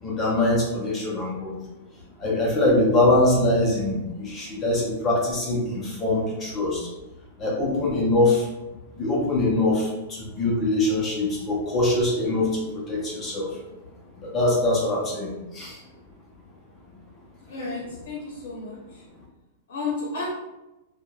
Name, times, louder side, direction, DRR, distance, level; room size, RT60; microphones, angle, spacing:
voice 1, 0.0-1.6 2.2-6.9 7.4-8.5 9.0-13.6 14.2-15.8 17.5-18.0, left 2 dB, 15° left, -4 dB, 0.5 m, -23 dB
voice 2, 17.5-18.2 18.4-18.8 19.7-20.3, left 3 dB, 65° left, -4 dB, 0.7 m, -31 dB
3.0 x 2.1 x 2.2 m, 0.99 s
supercardioid pair, 175°, 0 cm